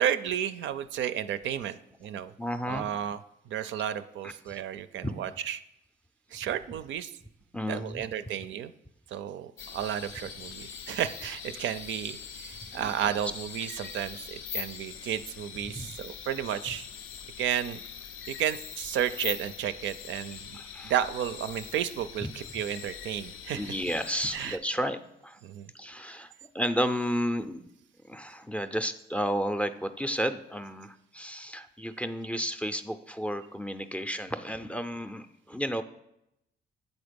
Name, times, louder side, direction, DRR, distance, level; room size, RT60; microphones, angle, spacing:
voice 1, 0.0-2.3 2.7-3.2 3.5-5.6 6.3-7.1 7.7-8.7 9.1-16.9 17.4-17.8 18.3-20.6 20.8-23.7 24.3-24.6 25.4-25.7, right 10 dB, 70° right, 12 dB, 0.4 m, -32 dB
voice 2, 2.4-2.9 4.2-4.6 5.0-5.1 7.5-8.0 12.7-12.9 15.8-15.9 20.5-20.9 22.2-22.3 23.5-25.4 25.7-27.6 28.0-35.8, equal, 5° left, 9 dB, 0.4 m, -32 dB
sound 1, 9.6-24.6, left 7 dB, 85° left, 0.6 m, -42 dB
8.1 x 4.0 x 5.1 m, 0.83 s
cardioid pair, 90°, 20 cm